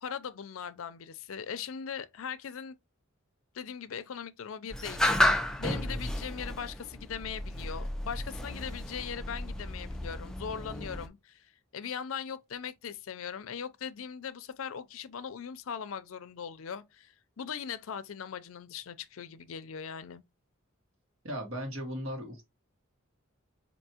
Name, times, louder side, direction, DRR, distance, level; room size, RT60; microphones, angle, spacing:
voice 1, 0.0-2.8 3.5-5.2 5.6-11.5 11.7-20.2, left 7 dB, 75° left, 0.4 m, -40 dB
sound 1, 4.7-11.1, left 1 dB, 5° left, 0.3 m, -32 dB
voice 2, 21.2-22.4, equal, 75° right, 1.4 m, -37 dB
4.4 x 2.7 x 2.8 m
head